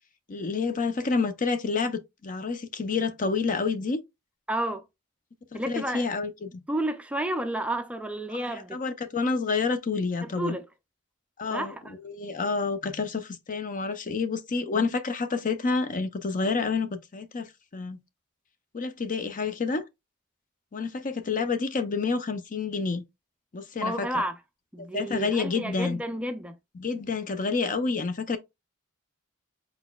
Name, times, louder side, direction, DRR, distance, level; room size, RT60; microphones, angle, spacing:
voice 1, 0.3-4.0 5.5-6.6 8.4-10.6 11.4-17.5 17.7-18.0 18.7-19.8 20.7-23.0 23.5-24.1 24.9-26.0 26.7-28.4, left 4 dB, 40° left, 0.6 m, -29 dB
voice 2, 4.5-4.8 5.5-6.0 6.7-8.8 10.2-10.6 11.5-11.9 23.8-24.4 24.7-26.5, right 1 dB, 5° right, 0.4 m, -31 dB
4.5 x 4.1 x 2.2 m
head